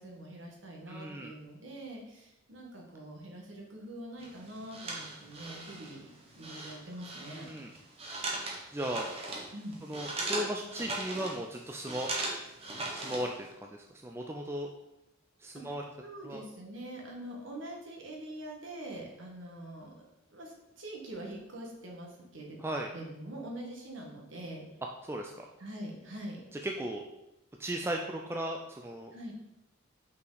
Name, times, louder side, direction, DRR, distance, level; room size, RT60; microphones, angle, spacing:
voice 1, 0.0-7.5 9.5-9.8 15.5-15.6 16.0-19.9 20.3-22.6 22.9-24.6 25.6-26.4 29.1-29.3, right 1 dB, 80° right, -1 dB, 1.5 m, -44 dB
voice 2, 0.9-1.3 7.3-7.7 8.7-9.1 9.8-12.1 12.9-14.7 15.4-15.8 16.2-16.4 22.6-22.9 25.0-25.5 26.5-27.0 27.6-29.1, right 1 dB, 15° right, 1 dB, 0.4 m, -36 dB
sound 1, 4.2-13.5, right 2 dB, 30° right, 1.1 m, -39 dB
5.5 x 5.0 x 4.0 m, 0.91 s
head